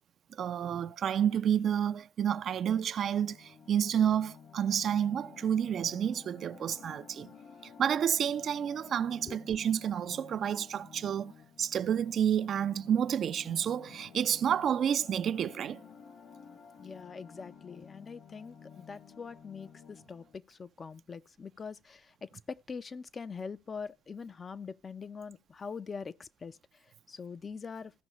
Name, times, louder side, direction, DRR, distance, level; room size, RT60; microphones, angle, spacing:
voice 1, 0.3-7.3 7.8-11.3 11.6-15.8, right 9 dB, 55° right, 0.4 m, -30 dB
sound 1, 3.0-20.3, left 6 dB, 55° left, 1.7 m, -53 dB
voice 2, 16.8-26.6 27.1-27.9, left 5 dB, 35° left, 0.5 m, -43 dB
15.5 x 5.4 x 3.0 m
supercardioid pair, 75°, 0 cm